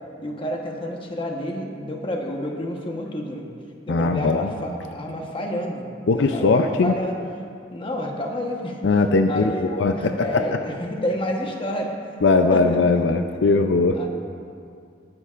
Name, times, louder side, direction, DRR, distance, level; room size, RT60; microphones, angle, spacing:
voice 1, 0.2-3.5 3.8-7.1 7.7-8.8 9.3-9.7 9.9-11.9 12.5-12.8 14.0-14.1, left 1 dB, 30° left, 1 dB, 1.1 m, -29 dB
voice 2, 3.9-4.5 6.1-6.9 8.8-10.6 12.2-14.1, left 3 dB, 70° left, 6 dB, 0.5 m, -20 dB
19.5 x 10.0 x 2.5 m, 2.4 s
head